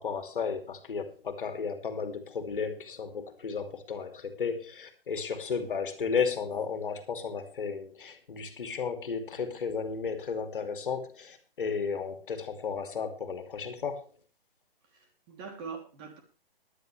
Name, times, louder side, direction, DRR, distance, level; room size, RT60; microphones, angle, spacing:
voice 1, 0.0-14.1, left 5 dB, 60° left, 7 dB, 2.6 m, -34 dB
voice 2, 14.9-16.2, right 5 dB, 25° right, 4 dB, 2.9 m, -43 dB
18.5 x 10.5 x 3.3 m, 0.32 s
hypercardioid pair, 150°, 30 cm